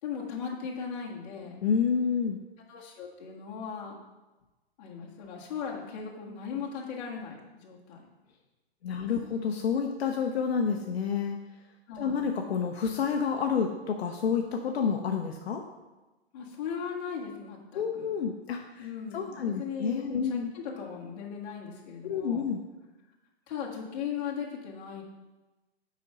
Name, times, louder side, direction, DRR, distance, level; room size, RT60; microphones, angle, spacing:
voice 1, 0.0-1.6 2.7-4.0 4.8-8.0 9.0-9.1 9.3-9.4 11.9-12.3 16.3-18.1 18.8-22.5 23.5-25.0, left 6 dB, 40° left, -3 dB, 1.7 m, -38 dB
voice 2, 1.6-2.4 8.8-11.4 12.0-15.6 17.7-18.9 19.1-20.5 22.0-22.6, left 6 dB, 75° left, 3 dB, 0.8 m, -29 dB
6.6 x 5.1 x 5.3 m, 1.1 s
hypercardioid pair, 160°, 32 cm